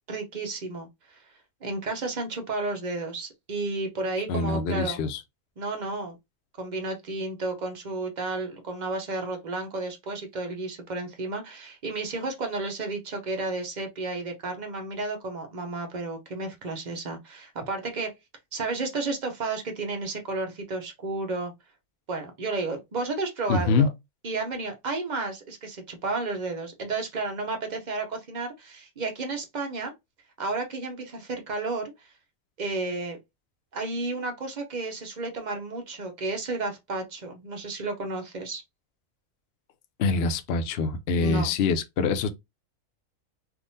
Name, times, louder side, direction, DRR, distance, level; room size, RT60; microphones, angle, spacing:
voice 1, 0.1-5.0 5.6-6.2 6.6-18.1 18.5-21.5 22.1-23.9 24.2-29.9 30.4-32.1 32.6-33.2 33.7-38.6 41.2-41.5, right 3 dB, 45° right, 0.6 m, -32 dB
voice 2, 4.3-5.2 23.5-23.9 40.0-42.3, left 4 dB, 65° left, 0.6 m, -24 dB
3.5 x 2.5 x 2.6 m
omnidirectional pair, 1.5 m